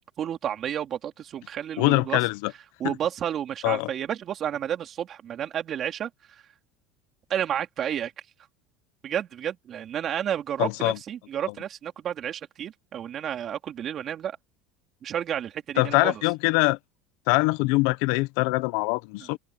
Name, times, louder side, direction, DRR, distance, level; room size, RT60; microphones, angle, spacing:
voice 1, 0.2-2.2 2.8-6.4 7.3-8.1 9.0-14.4 15.0-16.2 19.2-19.3, right 9 dB, 35° right, 3.5 m, -31 dB
voice 2, 1.8-2.5 3.6-3.9 10.6-11.0 15.8-16.8 17.3-19.4, left 24 dB, 70° left, 0.8 m, -23 dB
supercardioid pair, 135°, 0 cm